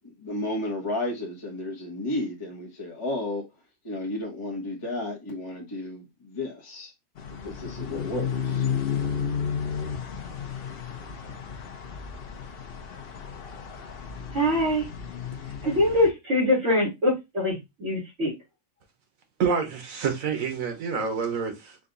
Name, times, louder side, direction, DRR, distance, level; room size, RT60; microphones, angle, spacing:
voice 1, 0.0-3.4 3.8-6.9 7.4-8.6, left 1 dB, 25° left, 1.1 m, -32 dB
sound 1, 7.2-16.1, left 7 dB, 55° left, 0.8 m, -33 dB
voice 2, 14.3-14.9 15.6-18.3, left 1 dB, 60° right, 2.4 m, -23 dB
voice 3, 19.4-21.8, right 6 dB, 80° right, 1.4 m, -27 dB
5.0 x 2.4 x 3.8 m
omnidirectional pair, 1.4 m